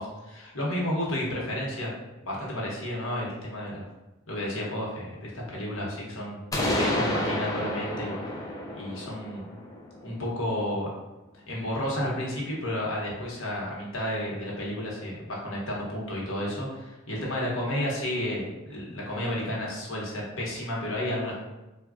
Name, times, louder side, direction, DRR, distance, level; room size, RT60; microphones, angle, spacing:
voice 1, 0.0-1.9 2.2-3.9 4.3-6.4 6.7-8.2 8.7-9.5 10.0-10.9 11.5-21.4, left 1 dB, 75° left, -4 dB, 0.9 m, -32 dB
sound 1, 6.5-10.3, left 1 dB, 15° left, 0.4 m, -30 dB
3.4 x 2.2 x 2.4 m, 1.0 s
head